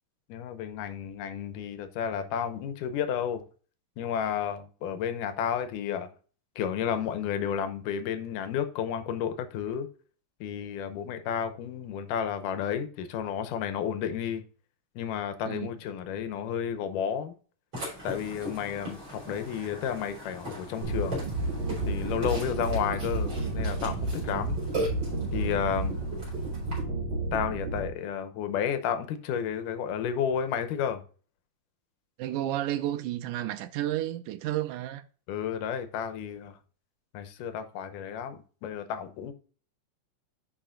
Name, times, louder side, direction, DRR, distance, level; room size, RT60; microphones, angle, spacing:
voice 1, 0.3-3.4 4.0-6.1 6.6-9.9 10.4-14.4 15.0-17.3 18.0-21.2 21.9-24.6 25.3-26.0 27.3-31.0 35.3-36.5 37.1-39.3, left 8 dB, 80° left, 2.4 m, -32 dB
Burping eructation, 17.7-26.8, equal, 35° right, 5.0 m, -39 dB
sound 1, 20.8-27.9, right 2 dB, 55° right, 3.1 m, -31 dB
voice 2, 24.3-24.6 32.2-35.0, right 13 dB, 80° right, 2.1 m, -32 dB
11.5 x 5.0 x 2.6 m
omnidirectional pair, 3.8 m